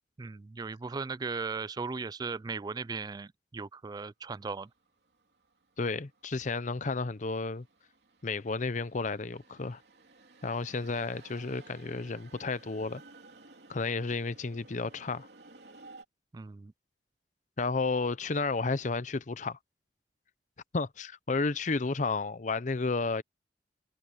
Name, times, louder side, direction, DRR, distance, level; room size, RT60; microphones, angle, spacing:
voice 1, 0.2-4.7 16.3-16.7, right 4 dB, 25° right, 0.3 m, -37 dB
sound 1, 4.4-16.0, right 3 dB, 65° right, 3.8 m, -56 dB
voice 2, 5.8-7.6 8.2-9.8 10.4-13.0 13.7-15.3 17.6-19.6 20.7-23.2, left 3 dB, 45° left, 0.7 m, -32 dB
head